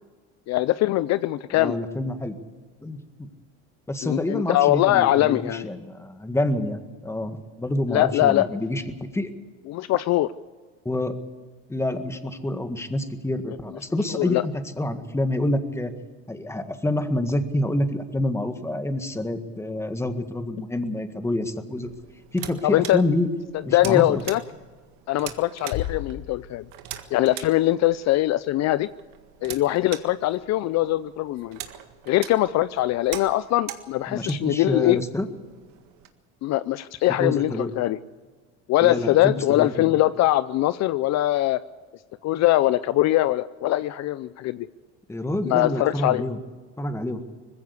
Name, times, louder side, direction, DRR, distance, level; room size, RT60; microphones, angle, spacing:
voice 1, 0.5-1.8 4.0-5.7 7.9-8.5 9.7-10.3 14.1-14.4 22.6-23.0 23.7-24.4 25.1-26.6 27.1-28.9 29.4-31.6 32.1-35.0 36.4-38.0 38.7-41.6 42.2-44.7 45.4-46.2, left 15 dB, 55° left, 15 dB, 0.6 m, -22 dB
voice 2, 1.5-2.4 2.8-3.3 3.9-9.3 10.9-11.2 11.7-15.9 16.3-21.9 22.3-23.3 23.7-24.2 34.1-35.3 37.2-37.7 38.8-39.9 45.1-46.4 46.8-47.2, left 1 dB, 10° left, 8 dB, 1.8 m, -27 dB
sound 1, 21.8-36.1, right 12 dB, 75° right, 1.8 m, -43 dB
sound 2, 25.7-27.2, left 13 dB, 70° left, 1.1 m, -34 dB
20.5 x 15.5 x 8.2 m, 1.4 s
supercardioid pair, 110°, 32 cm